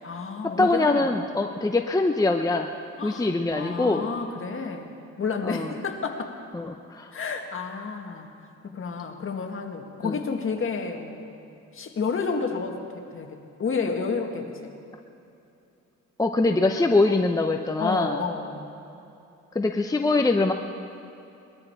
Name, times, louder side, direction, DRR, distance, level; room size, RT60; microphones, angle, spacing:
voice 1, 0.0-1.2 3.0-4.9 5.2-6.4 7.1-8.3 8.6-11.4 11.7-14.7 17.8-18.7, left 5 dB, 45° left, 3 dB, 1.7 m, -31 dB
voice 2, 0.6-2.7 3.0-4.1 5.4-5.7 6.5-7.1 10.0-10.2 16.2-18.2 19.5-20.5, left 2 dB, 10° left, 4 dB, 0.7 m, -23 dB
21.0 x 13.0 x 4.5 m, 2.8 s
cardioid pair, 90°, 30 cm